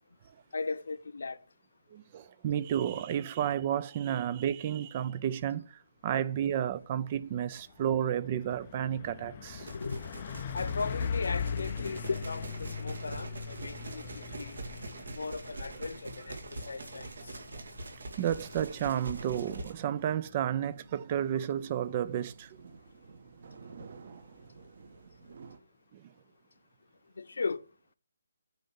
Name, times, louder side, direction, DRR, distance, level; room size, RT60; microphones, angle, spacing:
voice 1, 0.5-1.4 7.2-7.3 9.7-10.0 10.5-14.6 14.9-17.4 24.3-24.5 25.2-25.4 27.1-27.6, left 4 dB, 70° left, 0.9 m, -37 dB
voice 2, 1.9-9.7 18.2-22.6 24.1-24.2 25.9-26.1, right 10 dB, 25° right, 0.5 m, -32 dB
Truck, 7.0-7.2 7.6-20.2, left 7 dB, 30° left, 0.5 m, -40 dB
sound 1, 9.6-19.7, right 2 dB, 75° right, 2.5 m, -44 dB
sound 2, 19.1-25.6, right 5 dB, 45° right, 1.4 m, -52 dB
9.2 x 5.3 x 7.1 m
hypercardioid pair, 170°, 0 cm